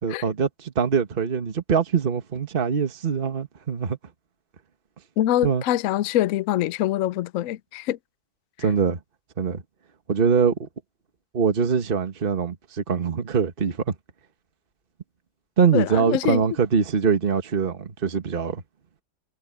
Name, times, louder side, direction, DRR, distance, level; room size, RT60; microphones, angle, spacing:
voice 1, 0.0-4.0 5.4-5.6 8.6-9.0 9.4-9.6 10.1-10.7 11.3-13.9 15.6-18.6, right 6 dB, 35° right, 1.5 m, -23 dB
voice 2, 5.2-8.0 15.7-16.4, left 13 dB, 75° left, 0.7 m, -24 dB
omnidirectional pair, 1.9 m